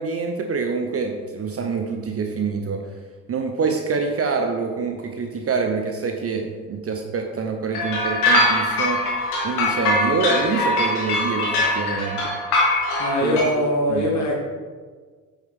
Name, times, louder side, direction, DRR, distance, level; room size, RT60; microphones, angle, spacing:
voice 1, 0.0-2.8 3.3-9.0 9.4-12.3 13.2-13.4 13.9-14.1, right 5 dB, 30° right, 4 dB, 0.8 m, -26 dB
sound 1, 7.7-13.4, left 2 dB, 70° left, 1.8 m, -22 dB
voice 2, 13.0-14.3, equal, 35° left, -2 dB, 2.3 m, -22 dB
9.0 x 5.6 x 3.5 m, 1.5 s
figure-of-eight pair, 50°, 46 cm